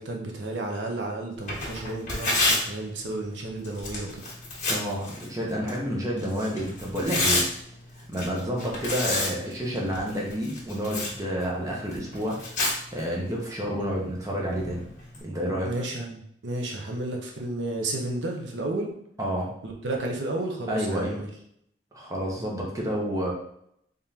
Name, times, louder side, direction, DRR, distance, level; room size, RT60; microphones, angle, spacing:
voice 1, 0.0-4.2 8.5-8.8 15.6-18.9 19.6-21.3, right 2 dB, 80° right, 1 dB, 0.7 m, -32 dB
Tearing, 1.4-15.2, left 2 dB, 45° left, 1.4 m, -32 dB
voice 2, 4.7-7.5 7.9-14.8 15.2-15.7 19.2-19.5 20.7-21.2 21.9-23.3, equal, 20° right, -3 dB, 0.8 m, -30 dB
3.6 x 3.6 x 2.8 m, 0.71 s
head